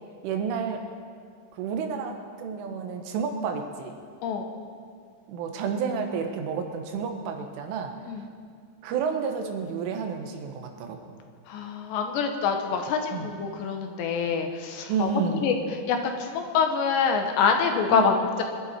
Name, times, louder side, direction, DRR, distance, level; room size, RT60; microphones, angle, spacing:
voice 1, 0.2-0.8 1.5-3.9 5.3-7.9 8.8-11.0 13.1-13.3 14.9-15.4 17.9-18.1, right 6 dB, 90° right, 4 dB, 3.9 m, -30 dB
voice 2, 11.5-15.1 15.4-18.4, left 6 dB, 75° left, 4 dB, 3.0 m, -26 dB
25.0 x 11.0 x 4.4 m, 2.2 s
omnidirectional pair, 5.5 m